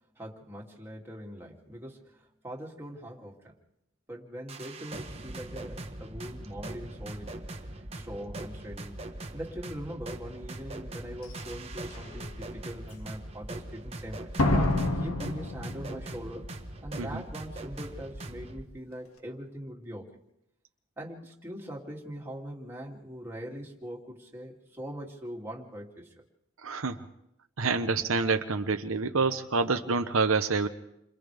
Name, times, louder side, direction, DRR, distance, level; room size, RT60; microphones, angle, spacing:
voice 1, 0.1-3.5 4.1-7.4 8.0-9.0 9.3-14.3 14.9-16.5 16.8-20.1 21.0-26.1, equal, 10° right, -3 dB, 2.7 m, -42 dB
sound 1, 4.5-18.6, right 1 dB, 25° right, 1.4 m, -41 dB
Slam, 11.2-11.3 11.9-12.3 14.4-16.3 16.5-16.6, left 1 dB, 80° left, 2.2 m, -28 dB
voice 2, 26.6-27.0 27.6-30.7, right 4 dB, 70° right, 7 dB, 0.9 m, -27 dB
29.5 x 26.0 x 3.5 m, 0.85 s
head